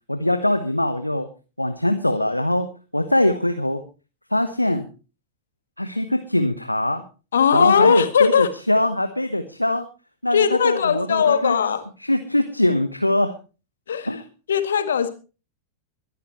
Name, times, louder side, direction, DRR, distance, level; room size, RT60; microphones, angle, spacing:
voice 1, 0.1-1.3 1.6-3.8 4.3-4.8 5.8-7.0 7.5-9.8 10.2-11.6 12.0-13.3 14.0-14.2, left 1 dB, 85° left, 9 dB, 1.0 m, -22 dB
voice 2, 7.3-8.5 10.3-11.8 13.9-14.2 14.5-15.1, left 7 dB, 65° left, 10 dB, 1.7 m, -19 dB
23.0 x 11.5 x 3.0 m, 0.33 s
figure-of-eight pair, 90°, 0 cm